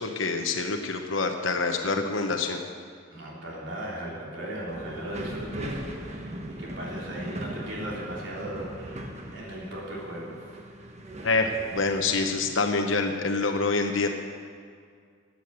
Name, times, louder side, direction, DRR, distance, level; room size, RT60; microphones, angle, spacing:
voice 1, 0.0-2.6 11.2-14.1, left 3 dB, 80° left, 4 dB, 1.0 m, -26 dB
voice 2, 3.1-10.6 13.9-14.1, right 1 dB, 70° right, -5 dB, 3.4 m, -37 dB
sound 1, 4.7-12.5, right 1 dB, 35° right, 1.2 m, -39 dB
14.5 x 9.3 x 6.9 m, 2.2 s
head